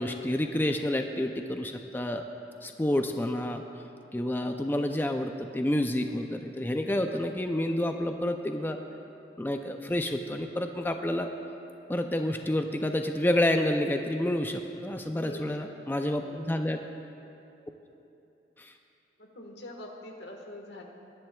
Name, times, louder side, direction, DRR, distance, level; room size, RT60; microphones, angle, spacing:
voice 1, 0.0-2.2 2.6-3.6 4.1-8.8 9.4-11.3 11.9-16.8 18.6-18.7, left 1 dB, 10° left, 5 dB, 0.4 m, -29 dB
voice 2, 7.5-8.0 15.1-16.7 19.2-20.8, left 1 dB, 85° left, 2 dB, 1.4 m, -45 dB
20.0 x 11.0 x 2.3 m, 2.8 s
head